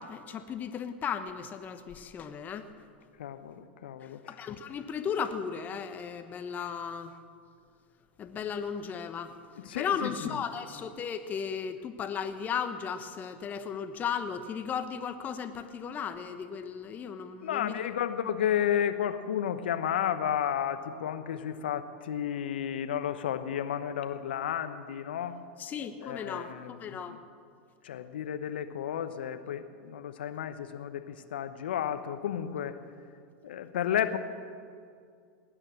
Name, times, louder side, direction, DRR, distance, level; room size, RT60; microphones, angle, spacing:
voice 1, 0.0-2.7 4.3-7.2 8.2-9.4 9.7-17.9 25.6-27.2, left 7 dB, 30° left, 9 dB, 1.0 m, -35 dB
voice 2, 3.2-4.2 9.6-10.4 17.4-25.3 26.0-27.2 27.8-32.8 33.4-34.2, left 9 dB, 75° left, 10 dB, 1.0 m, -32 dB
19.5 x 9.2 x 7.6 m, 2.3 s
hypercardioid pair, 95°, 6 cm